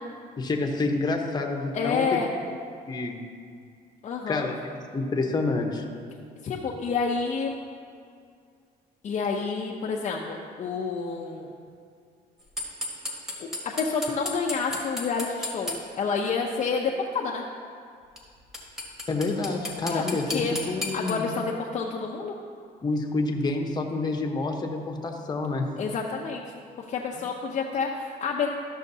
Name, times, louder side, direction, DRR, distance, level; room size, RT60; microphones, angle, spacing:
voice 1, 0.4-2.2 2.9-3.2 4.3-4.6 4.9-5.8 19.1-21.3 22.8-25.7, left 3 dB, 25° left, 2 dB, 0.9 m, -28 dB
voice 2, 1.7-2.3 4.0-4.5 6.4-7.6 9.0-11.5 13.4-17.4 19.9-20.5 20.9-22.3 25.8-26.4 26.8-28.5, left 5 dB, 45° left, -1 dB, 0.6 m, -29 dB
sound 1, 12.6-15.8 18.2-18.3 18.5-21.1, left 2 dB, ahead, 1.6 m, -32 dB
13.0 x 6.4 x 2.7 m, 2.3 s
cardioid pair, 110°, 17 cm